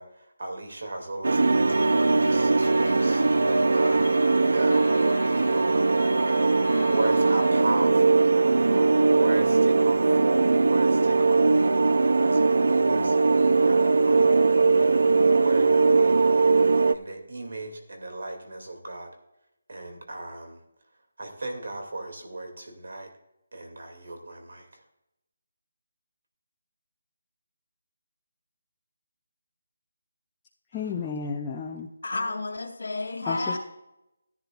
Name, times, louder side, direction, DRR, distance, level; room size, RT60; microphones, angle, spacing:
voice 1, 0.0-4.9 5.3-5.8 6.8-16.4 16.9-19.2 19.7-20.6 21.2-23.1 23.5-24.8, right 2 dB, 65° right, 4 dB, 2.5 m, -36 dB
sound 1, 1.2-16.9, right 3 dB, 80° right, 0.5 m, -20 dB
Clock, 1.7-7.5, left 3 dB, 40° left, 2.1 m, -42 dB
voice 2, 30.7-31.9 33.3-33.6, left 5 dB, 10° left, -5 dB, 0.5 m, -32 dB
voice 3, 32.0-33.6, left 2 dB, 80° left, -5 dB, 2.6 m, -31 dB
15.5 x 11.0 x 2.5 m, 0.88 s
hypercardioid pair, 180°, 0 cm